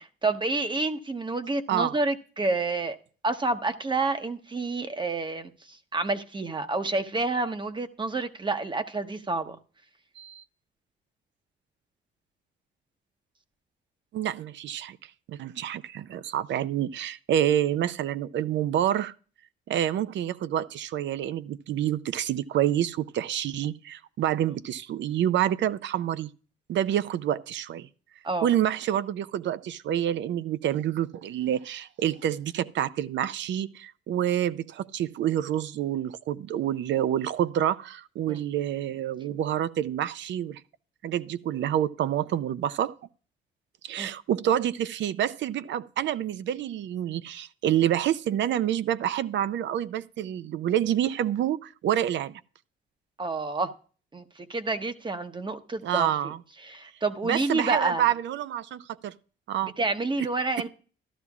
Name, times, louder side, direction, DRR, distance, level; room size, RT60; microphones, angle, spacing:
voice 1, 0.0-3.0 3.2-9.6 28.2-28.5 38.3-38.4 44.0-44.1 53.2-53.7 54.1-56.3 56.6-58.0 59.8-60.7, right 3 dB, 25° right, 0.9 m, -29 dB
voice 2, 14.1-15.0 15.3-19.1 19.7-26.3 26.7-27.9 28.4-40.6 41.0-42.9 43.8-52.4 55.8-56.4 57.2-59.1 59.5-59.7 60.6-60.7, right 11 dB, 65° right, 0.6 m, -28 dB
13.5 x 12.0 x 2.4 m
cardioid pair, 90°, 20 cm